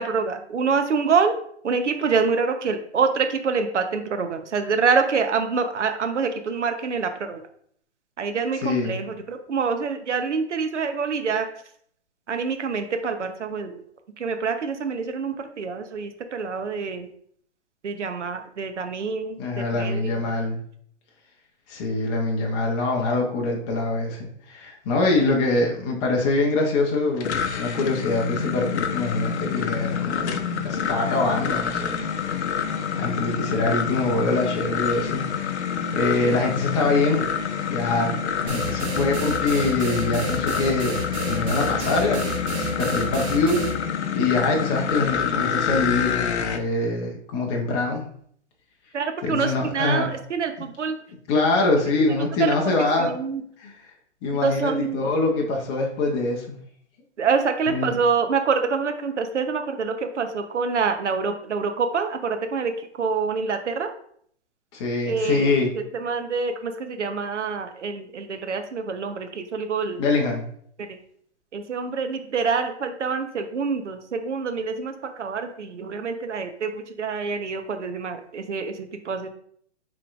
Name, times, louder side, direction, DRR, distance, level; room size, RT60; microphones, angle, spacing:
voice 1, 0.0-1.3 1.6-7.4 8.2-11.5 12.3-13.8 14.2-17.1 17.8-20.4 48.9-51.0 52.1-52.2 52.4-52.5 52.8-53.4 54.3-55.1 57.2-63.9 65.1-70.0 70.8-71.0 71.5-79.3, right 5 dB, 90° right, 7 dB, 0.8 m, -26 dB
voice 2, 8.6-9.0 19.4-20.6 21.7-30.4 30.6-32.0 32.9-35.7 35.9-37.3 37.7-48.0 49.2-50.1 51.3-53.1 53.6-53.7 54.2-56.6 57.7-57.9 64.7-65.7 70.0-70.5, left 3 dB, 25° left, 0 dB, 0.7 m, -24 dB
sound 1, 26.9-46.6, left 7 dB, 70° left, 0.6 m, -27 dB
sound 2, 38.5-43.7, right 3 dB, 30° right, 0.9 m, -31 dB
6.9 x 3.2 x 2.4 m, 0.63 s
hypercardioid pair, 140°, 34 cm